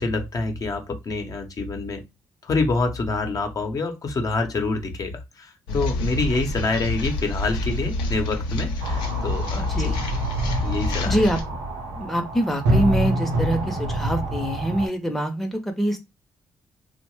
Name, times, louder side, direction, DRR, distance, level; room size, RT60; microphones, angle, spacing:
voice 1, 0.0-2.0 2.4-9.9 10.6-11.1, left 3 dB, 50° left, 4 dB, 0.8 m, -26 dB
sound 1, 5.7-11.4, left 2 dB, 80° left, 0.6 m, -28 dB
sound 2, 8.8-14.9, right 1 dB, 85° right, 0.7 m, -27 dB
voice 2, 9.6-10.1 11.1-11.4 11.9-16.1, equal, 5° left, 4 dB, 0.7 m, -25 dB
2.7 x 2.1 x 3.1 m, 0.24 s
hypercardioid pair, 50°, 8 cm